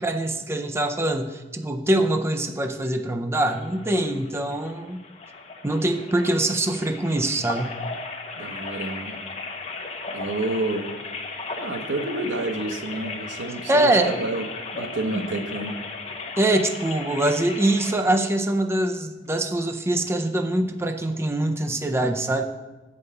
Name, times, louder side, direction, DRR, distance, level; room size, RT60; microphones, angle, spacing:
voice 1, 0.0-5.0 5.6-7.8 13.7-14.3 15.1-15.4 16.4-22.4, right 1 dB, 15° right, 5 dB, 0.4 m, -23 dB
sound 1, 3.5-17.9, left 3 dB, 35° left, 0.9 m, -36 dB
voice 2, 8.3-9.2 10.1-11.0 11.6-15.8, right 2 dB, 85° right, 7 dB, 0.8 m, -29 dB
7.8 x 5.3 x 6.6 m, 1.2 s
head